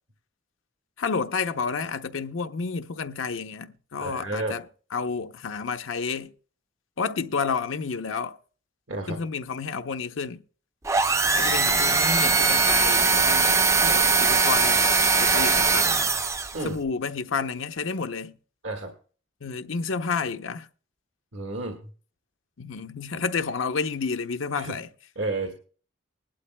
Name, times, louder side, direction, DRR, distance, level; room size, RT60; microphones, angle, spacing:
voice 1, 1.0-4.7 4.9-6.3 7.0-8.4 9.1-10.4 11.3-14.9 15.2-16.1 16.6-18.4 19.4-20.7 22.6-24.9, left 5 dB, 85° left, 0.7 m, -30 dB
voice 2, 4.0-4.6 8.9-9.2 11.4-11.5 16.5-16.8 18.6-18.9 21.3-21.8 24.5-24.7 25.1-25.5, right 2 dB, 75° right, 1.7 m, -31 dB
sound 1, 10.8-16.7, right 4 dB, 15° right, 0.4 m, -21 dB
20.0 x 11.5 x 2.2 m
head